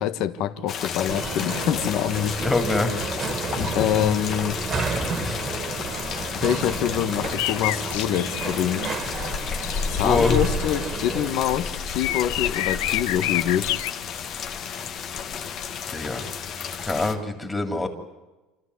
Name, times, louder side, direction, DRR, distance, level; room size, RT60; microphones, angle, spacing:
voice 1, 0.0-2.4 3.7-4.6 6.3-8.9 9.9-13.7, left 10 dB, 55° left, 1.5 m, -25 dB
sound 1, 0.7-17.1, left 6 dB, 40° left, 1.8 m, -31 dB
sound 2, 1.1-11.3, right 5 dB, 30° right, 2.1 m, -32 dB
voice 2, 2.4-2.9 4.0-4.1 5.0-5.4 10.0-10.4 15.9-16.2 16.8-17.9, left 3 dB, 10° left, 3.0 m, -25 dB
sound 3, 7.3-8.5 9.2-10.5 10.8-11.0 11.5-11.6 12.0-13.9, left 16 dB, 90° left, 0.8 m, -29 dB
29.0 x 14.0 x 9.8 m
cardioid pair, 155°, 0 cm